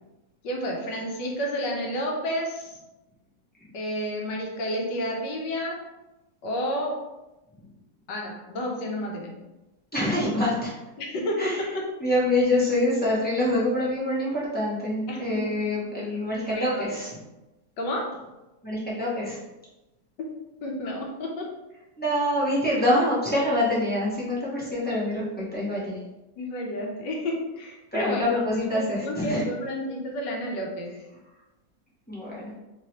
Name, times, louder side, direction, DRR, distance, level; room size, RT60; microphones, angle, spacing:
voice 1, 0.4-2.8 3.7-5.8 6.4-7.0 8.1-9.3 11.0-11.4 15.1-15.5 16.5-16.9 17.8-18.1 20.2-20.3 20.6-21.5 22.9-23.0 26.4-28.2 28.7-30.9, equal, 80° left, 0 dB, 1.4 m, -30 dB
voice 2, 9.9-10.7 11.4-11.6 12.0-17.1 18.6-19.4 22.0-26.0 27.9-29.4 32.1-32.5, left 1 dB, 10° left, -8 dB, 0.5 m, -25 dB
3.7 x 2.9 x 2.9 m, 1.0 s
omnidirectional pair, 1.9 m